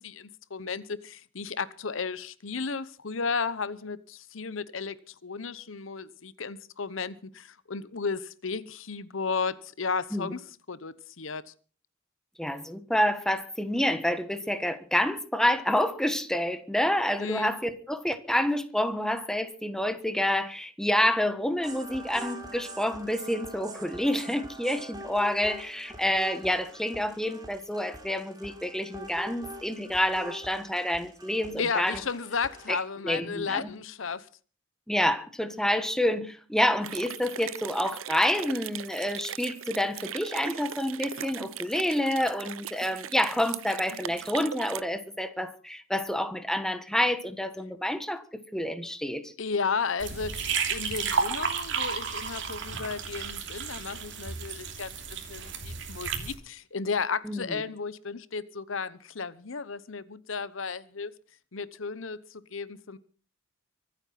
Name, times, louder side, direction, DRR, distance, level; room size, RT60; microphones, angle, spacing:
voice 1, 0.0-10.4 10.7-11.5 17.2-17.5 31.6-34.3 49.4-61.1 61.5-63.0, left 5 dB, 75° left, 0.9 m, -34 dB
voice 2, 12.4-32.0 32.7-32.8 33.0-33.7 34.9-49.3 57.2-57.6, left 1 dB, 5° left, 1.3 m, -28 dB
sound 1, 21.6-32.8, right 1 dB, 20° right, 3.3 m, -44 dB
sound 2, 36.8-44.8, right 10 dB, 90° right, 0.7 m, -39 dB
sound 3, 50.0-56.3, right 5 dB, 65° right, 2.9 m, -32 dB
24.5 x 8.9 x 5.8 m
head